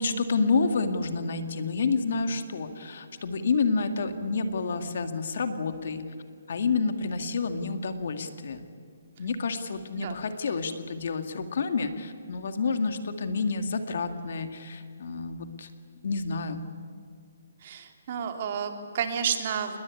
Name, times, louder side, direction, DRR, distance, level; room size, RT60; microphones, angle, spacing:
voice 1, 0.0-6.1 6.5-8.7 9.2-15.7 16.0-16.6, left 4 dB, 60° left, 8 dB, 2.2 m, -29 dB
voice 2, 17.6-19.8, right 7 dB, 45° right, 5 dB, 2.7 m, -31 dB
29.0 x 20.5 x 8.6 m, 2.2 s
hypercardioid pair, 160°, 0 cm